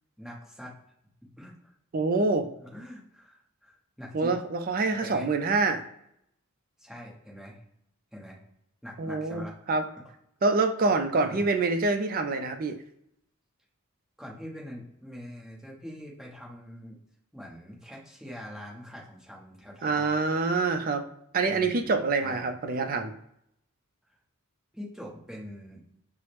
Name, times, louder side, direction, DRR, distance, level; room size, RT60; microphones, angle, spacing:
voice 1, 0.2-0.7 1.4-1.7 2.6-4.4 5.0-5.3 6.8-7.6 8.1-8.4 8.8-9.5 9.9-10.0 11.2-11.4 14.2-17.0 17.3-20.2 21.5-21.9 22.2-22.5 24.7-25.8, equal, ahead, -4 dB, 0.8 m, -43 dB
voice 2, 1.9-2.5 4.1-5.8 9.0-9.8 10.4-12.8 19.8-21.0 21.3-23.1, right 3 dB, 40° right, 6 dB, 0.4 m, -26 dB
4.7 x 2.0 x 2.9 m, 0.73 s
head